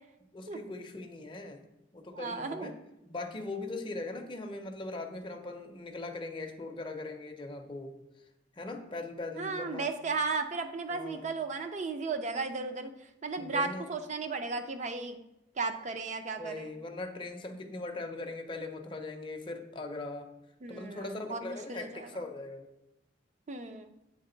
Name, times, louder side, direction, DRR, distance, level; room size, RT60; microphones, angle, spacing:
voice 1, 0.3-1.6 1.9-2.7 3.0-8.0 8.6-9.9 10.9-11.3 13.4-13.9 16.4-20.3 20.7-22.7, left 2 dB, 25° left, 3 dB, 0.6 m, -40 dB
voice 2, 2.1-2.7 9.4-12.9 13.2-15.2 15.6-16.7 20.6-22.2 23.5-23.9, right 4 dB, 40° right, 6 dB, 0.5 m, -35 dB
7.9 x 3.7 x 3.8 m, 0.94 s
head